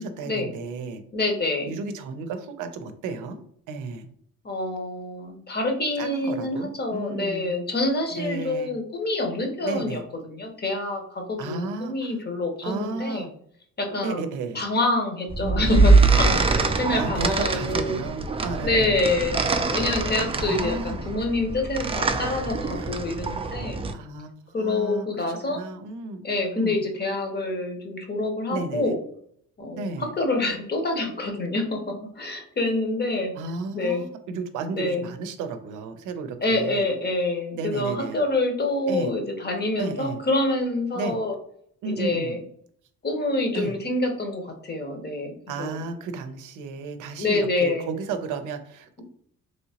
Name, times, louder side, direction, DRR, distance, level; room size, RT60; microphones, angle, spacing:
voice 1, 0.0-1.0 1.6-3.4 3.7-4.1 6.0-7.5 8.2-8.7 9.6-10.0 11.4-12.2 12.6-13.3 14.0-14.6 15.4-15.7 16.9-19.0 20.3-21.0 22.8-22.9 23.9-26.2 26.5-26.8 28.5-29.0 29.8-30.1 33.4-36.9 37.5-38.2 38.9-39.1 39.8-40.2 40.9-41.1 41.8-42.4 43.5-43.8 45.5-49.0, right 4 dB, 90° right, 8 dB, 0.5 m, -33 dB
voice 2, 1.1-1.7 4.4-13.3 13.8-14.3 14.5-18.0 18.6-19.4 19.7-23.8 24.5-25.6 26.2-29.0 29.6-31.8 32.2-33.3 33.7-34.0 34.7-35.1 36.4-41.3 41.9-42.4 43.0-45.8 47.2-47.9, left 2 dB, 35° left, 3 dB, 0.9 m, -26 dB
sound 1, 15.3-23.9, right 3 dB, 20° right, 0.3 m, -23 dB
3.1 x 2.8 x 2.8 m, 0.65 s
cardioid pair, 90°, 30 cm